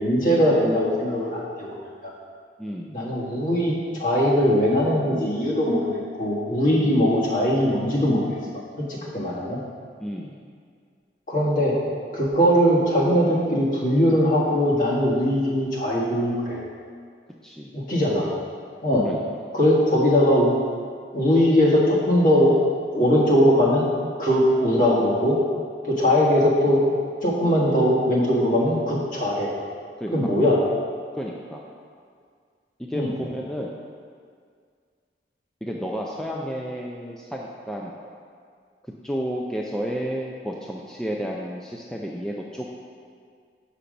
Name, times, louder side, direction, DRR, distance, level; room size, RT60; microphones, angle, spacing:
voice 1, 0.0-1.7 2.0-2.1 2.9-8.4 8.8-9.6 11.3-11.7 12.1-16.6 17.7-18.3 18.8-19.1 19.5-20.6 21.1-22.5 22.9-23.8 24.2-25.4 25.8-26.8 27.2-29.5 30.1-30.6 32.9-33.1, equal, 50° left, -5 dB, 1.6 m, -20 dB
voice 2, 2.6-3.0 6.8-7.0 9.2-9.6 10.0-10.4 17.4-17.7 19.0-19.2 30.0-30.3 31.1-31.6 32.8-33.8 35.6-37.9 39.0-42.6, equal, 5° left, -2 dB, 0.4 m, -32 dB
6.8 x 5.8 x 5.0 m, 2.1 s
head